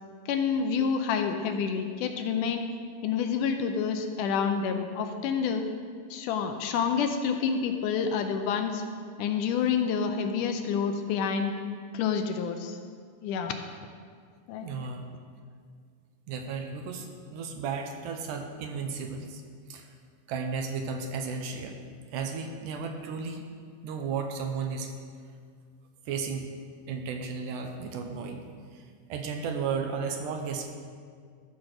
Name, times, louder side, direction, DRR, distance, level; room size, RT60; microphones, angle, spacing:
voice 1, 0.3-2.6 3.0-5.6 6.1-8.8 9.2-11.5 11.9-12.8 13.2-13.6 14.5-14.7, left 6 dB, 80° left, 6 dB, 2.1 m, -28 dB
voice 2, 14.6-15.1 16.3-19.4 19.7-19.9 20.3-21.8 22.1-23.5 23.8-24.9 26.1-26.5 26.9-28.5 28.7-28.8 29.1-30.7, right 5 dB, 80° right, 4 dB, 2.2 m, -34 dB
13.5 x 4.9 x 6.0 m, 2.1 s
omnidirectional pair, 3.8 m